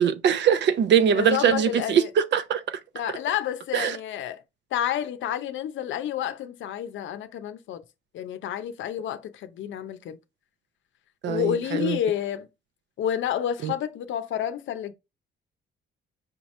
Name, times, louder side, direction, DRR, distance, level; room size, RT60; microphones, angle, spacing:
voice 1, 0.0-2.6 3.7-4.0 11.2-12.0 13.6-13.7, right 8 dB, 65° right, 0.6 m, -22 dB
voice 2, 1.1-2.1 2.9-4.4 4.7-7.8 8.1-10.2 11.2-12.5 13.0-14.9, left 10 dB, 75° left, 0.6 m, -29 dB
5.1 x 2.9 x 3.1 m
cardioid pair, 90°, 20 cm